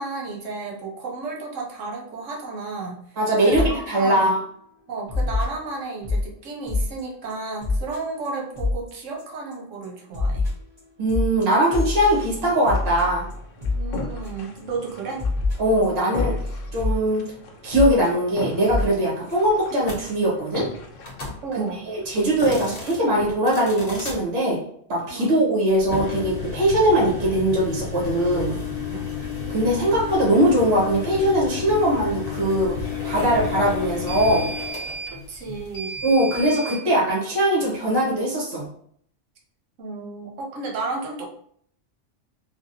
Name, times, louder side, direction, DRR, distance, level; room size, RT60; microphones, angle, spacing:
voice 1, 0.0-3.0 3.4-3.6 4.0-4.3 4.9-10.4 13.6-15.2 21.4-21.9 25.1-25.3 28.9-29.1 35.1-35.9 39.8-41.4, right 3 dB, 85° right, 0 dB, 1.1 m, -32 dB
voice 2, 3.2-4.4 11.0-13.2 15.6-16.3 16.7-17.2 17.6-20.6 21.9-24.6 24.9-28.5 29.5-32.7 33.0-34.5 36.0-38.7, right 1 dB, 55° right, -4 dB, 1.3 m, -21 dB
sound 1, 3.5-3.7 4.1-4.4 5.1-6.3 6.7-7.0 7.3-7.4 7.6-8.0 8.2-8.3 8.5-8.9 9.2-9.5 9.8-14.6 14.9-15.0 15.2-17.0 17.7-18.1 18.7-18.9 19.3-19.4 19.6-19.7, left 3 dB, 40° right, 1.6 m, -26 dB
sound 2, 12.1-23.4, left 2 dB, 85° left, 1.0 m, -39 dB
sound 3, 19.8-20.0 21.0-21.4 22.3-23.0 23.5-24.2 25.8-36.8, left 4 dB, 55° left, 0.9 m, -32 dB
3.5 x 2.2 x 2.6 m, 0.64 s
omnidirectional pair, 1.3 m